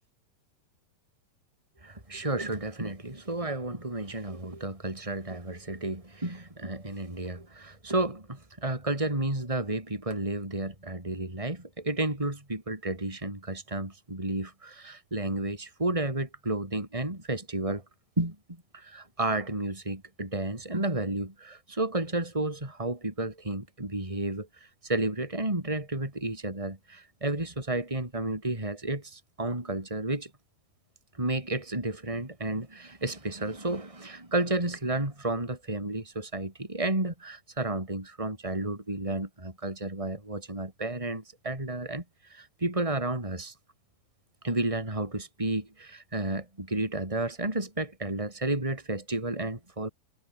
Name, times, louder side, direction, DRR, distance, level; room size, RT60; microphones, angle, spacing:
voice 1, 1.8-17.8 18.2-18.4 18.7-24.5 24.8-30.3 31.2-42.0 42.3-43.5 44.4-49.9, right 2 dB, 5° right, 5.5 m, -32 dB
omnidirectional pair, 4.7 m